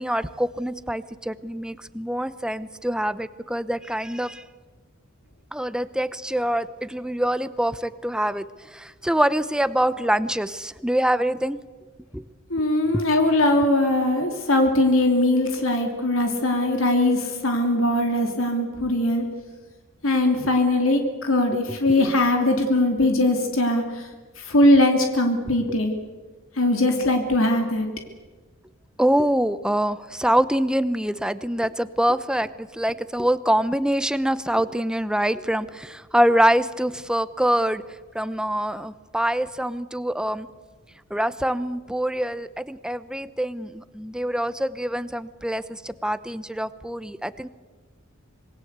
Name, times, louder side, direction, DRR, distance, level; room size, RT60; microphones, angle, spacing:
voice 1, 0.0-4.4 5.5-11.6 12.1-12.2 12.9-13.0 21.9-22.1 25.7-25.8 29.0-37.8 38.1-40.5 41.1-47.5, right 1 dB, 5° right, 14 dB, 0.8 m, -25 dB
voice 2, 12.5-19.4 20.0-24.0 24.4-26.0 26.6-27.9, left 1 dB, 80° left, 4 dB, 2.9 m, -21 dB
26.5 x 22.0 x 8.2 m, 1.3 s
head